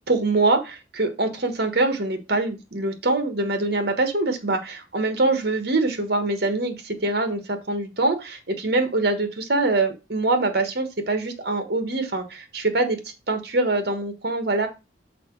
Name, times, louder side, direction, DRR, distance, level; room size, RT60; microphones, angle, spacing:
voice 1, 0.1-13.0 13.3-14.7, right 2 dB, 55° right, 8 dB, 1.3 m, -24 dB
5.9 x 4.5 x 4.5 m, 0.27 s
head